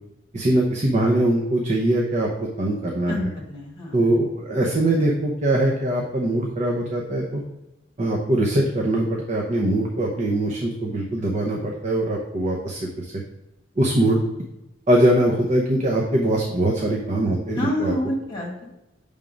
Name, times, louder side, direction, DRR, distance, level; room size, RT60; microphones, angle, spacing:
voice 1, 0.3-3.2 3.9-7.4 8.0-13.1 13.8-14.2 14.9-17.9, right 1 dB, 40° right, -1 dB, 0.8 m, -22 dB
voice 2, 3.1-4.2 17.5-18.6, left 1 dB, 25° left, -1 dB, 1.8 m, -28 dB
7.3 x 3.6 x 5.2 m, 0.93 s
head